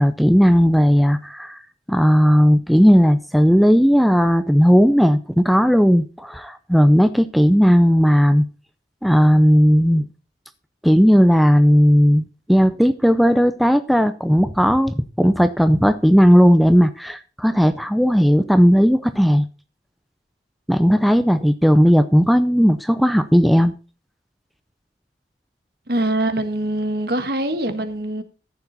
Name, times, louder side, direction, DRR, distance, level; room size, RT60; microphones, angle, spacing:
voice 1, 0.0-1.6 1.9-8.4 9.0-10.0 10.8-19.5 20.7-23.7, equal, ahead, 0.5 m, -15 dB
voice 2, 25.9-28.2, right 1 dB, 60° right, 1.5 m, -23 dB
14.0 x 7.2 x 4.0 m
head